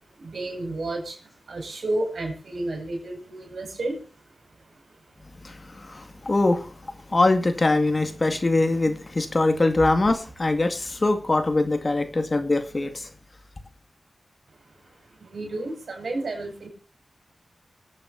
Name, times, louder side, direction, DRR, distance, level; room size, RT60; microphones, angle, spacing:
voice 1, 0.2-4.1 6.0-6.2 15.2-16.7, right 2 dB, 75° right, 3 dB, 5.6 m, -31 dB
voice 2, 5.4-6.7 7.1-13.1, left 2 dB, 45° left, 8 dB, 2.1 m, -23 dB
25.5 x 8.7 x 2.7 m, 0.35 s
cardioid pair, 45°, 0 cm